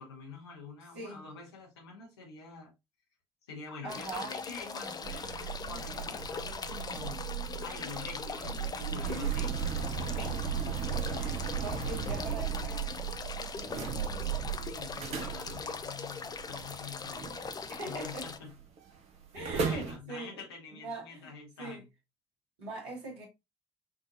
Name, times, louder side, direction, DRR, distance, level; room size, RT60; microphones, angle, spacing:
voice 1, 0.0-2.7 3.5-7.3 7.6-10.4 14.7-17.3 17.8-18.5 19.3-21.9, left 4 dB, 80° left, 1.0 m, -47 dB
voice 2, 0.9-1.3 3.8-5.3 9.1-9.3 11.1-13.0 13.3-14.2 17.7-18.3 19.3-20.4 20.7-21.3 21.6-21.8 22.6-23.3, right 2 dB, 70° right, 1.5 m, -42 dB
sound 1, 3.9-18.4, left 5 dB, 30° left, 0.5 m, -41 dB
sound 2, 5.0-18.2 18.4-18.8 19.2-20.0, right 8 dB, 55° right, 0.8 m, -36 dB
5.2 x 2.6 x 2.5 m
figure-of-eight pair, 40°, 13 cm